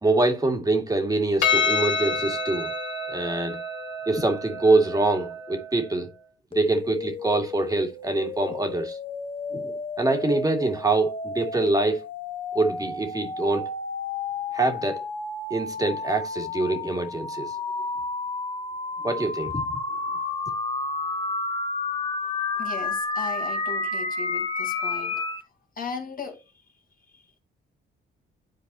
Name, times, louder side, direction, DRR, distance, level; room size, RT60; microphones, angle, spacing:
voice 1, 0.0-2.7 3.1-3.6 4.1-6.1 6.5-9.0 9.5-12.0 12.5-13.7 14.5-15.0 15.5-17.5 19.0-19.8, right 2 dB, 20° right, 2.1 m, -24 dB
Percussion, 1.4-6.0, left 5 dB, 70° left, 2.5 m, -28 dB
sound 1, 6.5-25.4, left 3 dB, 25° left, 1.5 m, -31 dB
voice 2, 22.6-25.2 25.8-26.5 27.1-27.4, left 6 dB, 45° left, 2.1 m, -37 dB
11.0 x 4.5 x 2.8 m
cardioid pair, 90°, 20 cm